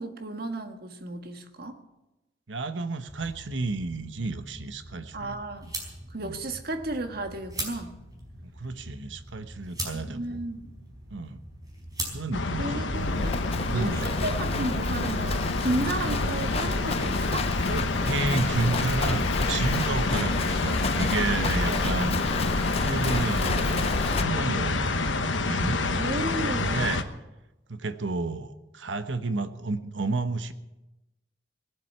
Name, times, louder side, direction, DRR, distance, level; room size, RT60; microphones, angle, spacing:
voice 1, 0.0-1.8 5.1-5.7 6.1-7.9 9.9-10.7 12.6-13.3 13.7-17.5 21.7-21.9 25.9-26.9, right 2 dB, 60° right, 6 dB, 1.7 m, -33 dB
voice 2, 2.5-5.4 6.2-6.4 8.4-10.4 11.1-11.4 12.1-12.9 13.1-13.4 13.7-14.0 17.6-22.2 22.8-24.9 25.2-25.8 26.7-27.0 27.7-30.5, right 3 dB, 85° right, 10 dB, 1.1 m, -31 dB
sound 1, 3.1-13.4, right 1 dB, 20° right, 4.9 m, -41 dB
sound 2, 12.3-27.0, left 3 dB, 85° left, 1.2 m, -28 dB
Livestock farm animals working animals, 12.9-24.2, left 3 dB, 35° left, 0.7 m, -31 dB
19.5 x 7.8 x 9.3 m, 1.0 s
head